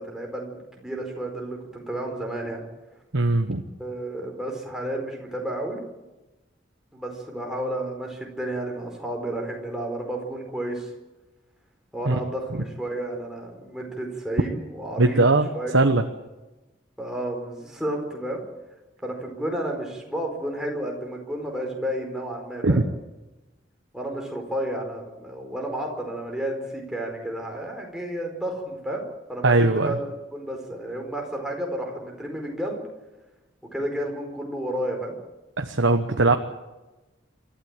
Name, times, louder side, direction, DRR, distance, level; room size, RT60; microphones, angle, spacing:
voice 1, 0.0-2.6 3.8-5.8 6.9-10.9 11.9-15.2 15.5-15.7 17.0-18.4 19.0-22.8 23.9-29.0 29.3-32.8 33.7-35.2, right 1 dB, 5° right, 0 dB, 4.6 m, -31 dB
voice 2, 3.1-3.6 12.1-12.2 15.0-15.5 15.7-16.0 22.6-22.8 29.4-30.0 35.6-36.4, right 2 dB, 85° right, 5 dB, 1.2 m, -19 dB
28.0 x 13.0 x 9.0 m, 1.1 s
head